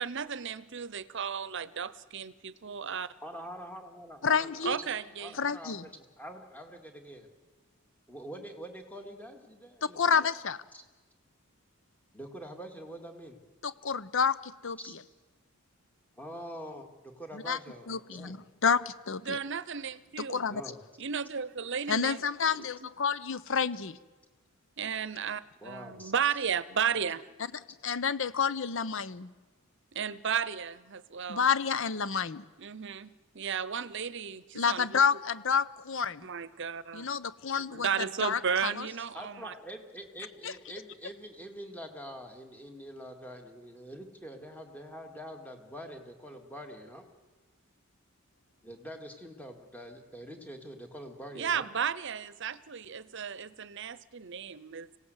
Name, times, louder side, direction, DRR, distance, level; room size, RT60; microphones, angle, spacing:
voice 1, 0.0-3.1 4.6-5.4 19.2-20.4 21.0-22.9 24.8-27.3 29.9-31.4 32.6-35.0 36.2-37.1 37.7-39.5 51.3-54.9, right 7 dB, 60° right, 17 dB, 0.8 m, -34 dB
voice 2, 3.2-4.9 5.2-7.3 8.1-10.3 10.7-10.8 12.1-13.4 14.8-15.0 16.1-18.4 20.5-20.8 25.6-26.1 38.9-47.1 48.6-51.7, equal, 10° left, 4 dB, 2.1 m, -45 dB
voice 3, 4.2-4.8 5.4-5.8 10.0-10.6 13.6-14.8 17.3-17.6 17.9-18.4 18.6-19.4 20.3-20.6 21.9-24.0 27.8-29.3 31.3-32.4 34.5-36.3 36.9-37.9 38.2-38.9 40.4-40.5, left 6 dB, 60° left, 16 dB, 0.8 m, -29 dB
26.0 x 17.5 x 8.1 m, 1.3 s
head